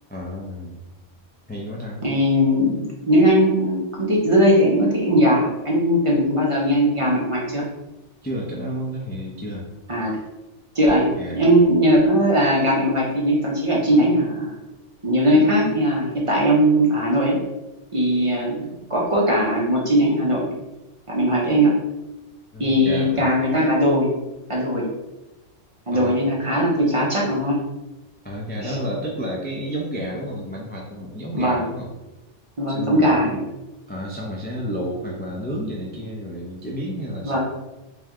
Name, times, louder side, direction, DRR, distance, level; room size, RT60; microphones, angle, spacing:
voice 1, 0.1-0.8 1.5-2.0 8.2-9.7 11.2-11.5 22.5-23.3 25.9-26.2 28.2-31.9 32.7-33.2 33.9-37.4, equal, 15° left, -3 dB, 0.4 m, -31 dB
voice 2, 2.0-7.6 9.9-10.2 10.7-14.6 15.0-17.4 17.9-20.5 21.1-21.7 22.6-24.1 24.5-24.9 25.9-27.6 28.6-28.8 31.3-31.6 32.6-33.4 37.2-37.4, equal, 30° right, -4 dB, 0.8 m, -19 dB
3.3 x 3.2 x 3.6 m, 1.0 s
omnidirectional pair, 1.2 m